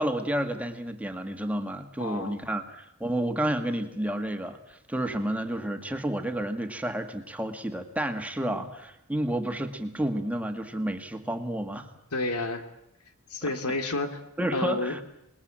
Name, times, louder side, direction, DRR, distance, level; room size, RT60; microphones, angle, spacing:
voice 1, 0.0-11.9 13.4-13.5 14.4-15.0, right 1 dB, 5° right, 6 dB, 1.7 m, -30 dB
voice 2, 2.0-2.4 8.4-8.7 12.1-12.6 13.3-14.2 14.5-15.0, left 2 dB, 90° left, 8 dB, 2.6 m, -30 dB
27.0 x 20.5 x 8.8 m, 0.79 s
head